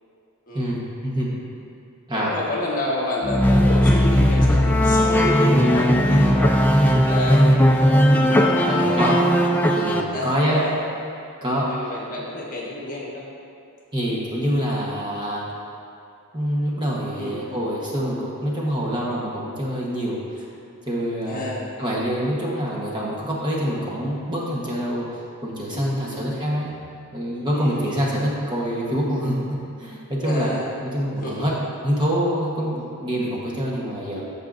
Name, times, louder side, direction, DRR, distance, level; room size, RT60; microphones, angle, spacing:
voice 1, 0.5-1.3 2.1-2.3 6.8-7.0 8.7-9.2 9.7-10.6 11.4-11.7 13.9-15.4 16.3-20.5 20.9-21.5 21.8-25.1 25.4-26.7 27.1-30.5 30.9-31.5 31.8-34.2, equal, 20° right, -5 dB, 1.2 m, -25 dB
voice 2, 2.1-6.5 7.1-9.2 10.1-10.8 11.6-13.3 17.2-17.4 21.3-21.6 25.7-26.3 27.5-28.0 30.2-30.7 31.2-31.5, left 1 dB, 35° left, -4 dB, 1.3 m, -30 dB
sound 1, 3.2-10.0, equal, 10° left, 0.4 m, -17 dB
14.5 x 5.4 x 2.6 m, 2.6 s
head